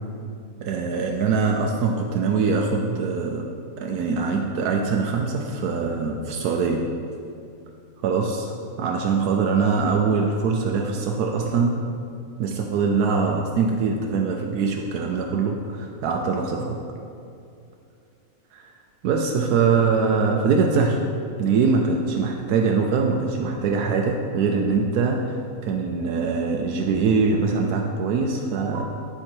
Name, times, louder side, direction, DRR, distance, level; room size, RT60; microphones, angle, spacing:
voice 1, 0.6-3.5 3.8-6.8 8.0-11.8 12.4-16.8 18.5-18.7 19.0-21.0 21.4-28.8, right 5 dB, 85° right, 1 dB, 1.1 m, -23 dB
10.5 x 4.9 x 4.4 m, 2.5 s
omnidirectional pair, 1.6 m